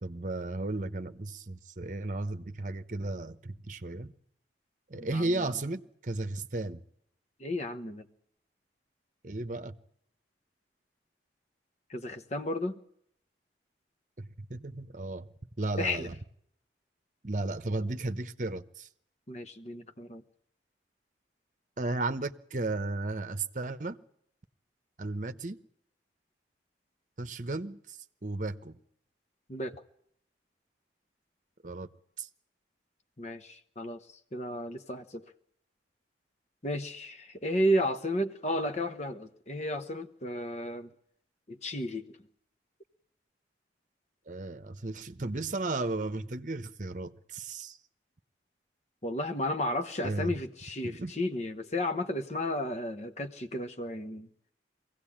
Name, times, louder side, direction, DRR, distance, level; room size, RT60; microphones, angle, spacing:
voice 1, 0.0-4.1 4.9-6.8 9.2-9.7 14.2-15.3 15.6-16.2 17.2-18.9 21.8-24.0 25.0-25.6 27.2-28.8 31.6-31.9 32.2-32.3 44.3-47.8 50.0-50.3 50.8-51.1, right 2 dB, 45° right, 0.9 m, -34 dB
voice 2, 4.9-5.5 7.4-8.0 11.9-12.8 15.8-16.1 19.3-20.2 29.5-29.7 33.2-34.0 34.3-35.2 36.6-40.9 41.5-42.1 49.0-54.3, left 1 dB, 40° left, 1.1 m, -33 dB
22.5 x 17.0 x 8.7 m
head